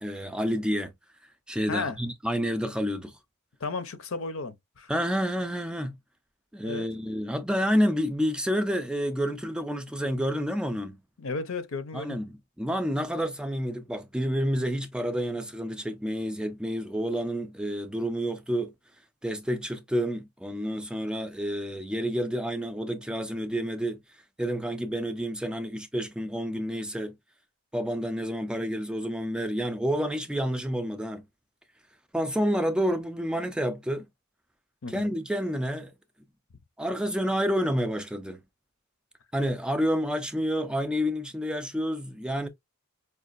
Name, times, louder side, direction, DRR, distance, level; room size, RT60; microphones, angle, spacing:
voice 1, 0.0-0.9 1.5-3.1 4.9-5.9 6.5-11.0 11.9-18.7 19.2-24.0 24.4-27.1 27.7-31.2 32.1-34.0 34.9-35.9 36.8-38.4 39.3-42.5, equal, 5° right, 0.3 m, -29 dB
voice 2, 3.6-4.9 6.6-6.9 11.2-12.2 34.8-35.1, left 4 dB, 70° left, 0.6 m, -34 dB
5.0 x 2.4 x 2.4 m
head